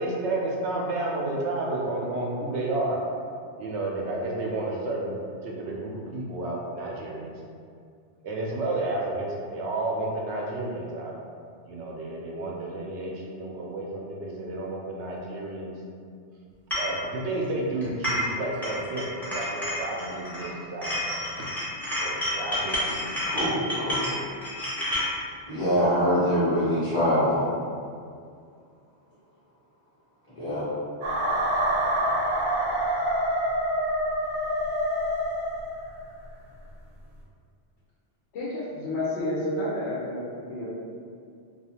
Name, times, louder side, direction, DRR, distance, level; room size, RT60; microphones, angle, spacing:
voice 1, 0.0-3.0 3.6-5.2 5.4-7.3 8.2-11.1 11.6-15.7 16.7-19.5 19.8-21.0 22.0-23.2, right 2 dB, 85° right, -2 dB, 0.9 m, -31 dB
sound 1, 16.7-16.9 17.8-18.3 18.6-20.5 20.8-25.1, left 1 dB, ahead, 0.5 m, -30 dB
voice 2, 23.2-24.1 25.5-27.5 30.4-30.6, equal, 30° left, -13 dB, 0.9 m, -24 dB
sound 2, 31.0-36.0, right 1 dB, 60° right, 0.8 m, -26 dB
voice 3, 38.3-40.8, left 1 dB, 85° left, -8 dB, 0.9 m, -30 dB
2.4 x 2.3 x 2.8 m, 2.2 s
omnidirectional pair, 1.1 m